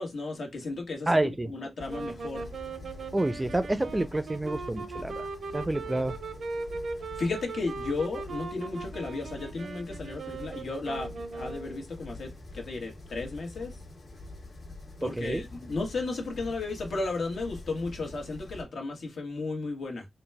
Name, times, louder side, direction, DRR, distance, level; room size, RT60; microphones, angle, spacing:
voice 1, 0.0-2.5 7.2-13.8 15.0-20.1, left 3 dB, 80° left, 1.3 m, -34 dB
voice 2, 1.1-1.5 3.1-5.3 5.5-6.2 15.0-15.4, right 1 dB, 20° right, 0.4 m, -28 dB
sound 1, 1.8-18.6, left 2 dB, 65° left, 1.4 m, -46 dB
sound 2, 1.9-11.8, right 4 dB, 80° right, 0.6 m, -39 dB
4.0 x 2.2 x 3.3 m
wide cardioid pair, 100°, 0 cm